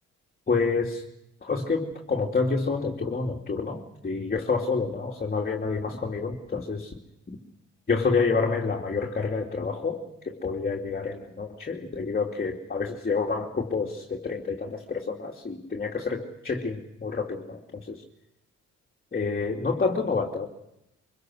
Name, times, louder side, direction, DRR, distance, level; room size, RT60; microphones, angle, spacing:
voice 1, 0.5-1.0 1.4-6.9 7.3-7.4 7.9-18.0 19.1-20.5, left 4 dB, 30° left, 0 dB, 2.8 m, -28 dB
24.0 x 23.5 x 6.4 m, 0.84 s
cardioid pair, 90°, 30 cm